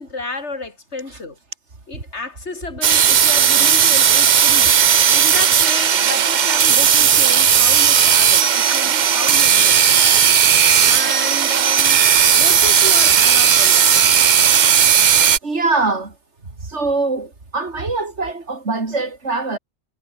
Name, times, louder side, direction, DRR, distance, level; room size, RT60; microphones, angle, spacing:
voice 1, 0.0-1.4 1.9-4.8 5.1-9.8 10.8-12.0 12.4-14.0, left 3 dB, 85° left, 3.4 m, -31 dB
sound 1, 2.8-15.4, right 8 dB, 50° right, 0.7 m, -14 dB
voice 2, 15.1-16.2 16.4-19.6, right 3 dB, 85° right, 3.5 m, -23 dB
omnidirectional pair, 1.1 m